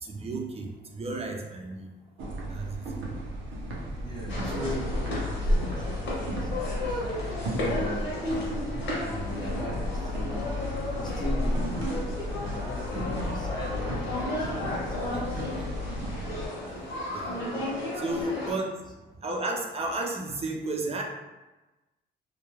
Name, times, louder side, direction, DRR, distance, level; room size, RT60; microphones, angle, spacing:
voice 1, 0.0-1.9 2.5-2.8 4.5-5.3 15.1-15.2 15.9-16.0 17.1-17.4 17.9-18.7 19.2-21.0, right 2 dB, 30° right, 0 dB, 0.5 m, -33 dB
sound 1, 2.2-16.5, left 1 dB, 85° right, 0.5 m, -35 dB
voice 2, 4.0-4.7 4.9-5.1 5.3-8.6 9.0-10.5 11.0-15.7 18.1-18.4, left 2 dB, 20° left, -3 dB, 0.7 m, -40 dB
sound 2, 4.3-18.5, left 1 dB, 70° left, 1.0 m, -32 dB
2.3 x 2.1 x 3.0 m, 1.1 s
cardioid pair, 90°, 20 cm